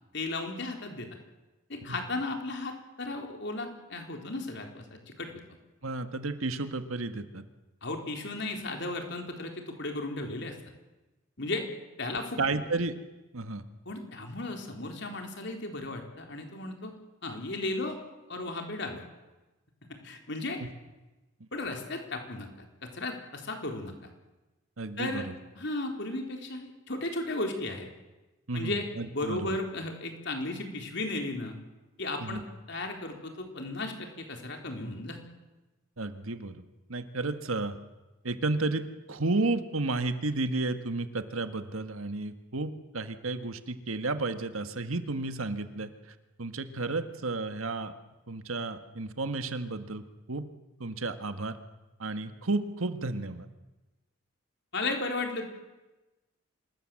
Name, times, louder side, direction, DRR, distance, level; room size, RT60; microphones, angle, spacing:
voice 1, 0.1-1.1 1.7-5.3 7.8-10.5 11.4-11.7 12.0-12.4 13.9-16.9 17.2-18.0 18.3-19.0 19.9-20.6 21.5-24.0 25.0-25.3 25.6-27.9 28.5-28.9 29.1-31.6 32.0-35.2 54.7-55.4, left 2 dB, 55° left, 3 dB, 3.9 m, -35 dB
voice 2, 5.8-7.4 12.4-12.9 13.3-13.6 20.6-20.7 21.4-21.5 24.8-25.4 28.5-29.6 32.2-32.4 36.0-36.6 36.9-37.8 38.2-45.9 46.4-47.9 48.3-50.5 50.8-51.6 52.0-53.5, right 2 dB, 80° right, 9 dB, 1.7 m, -32 dB
26.5 x 20.5 x 7.7 m, 1.1 s
head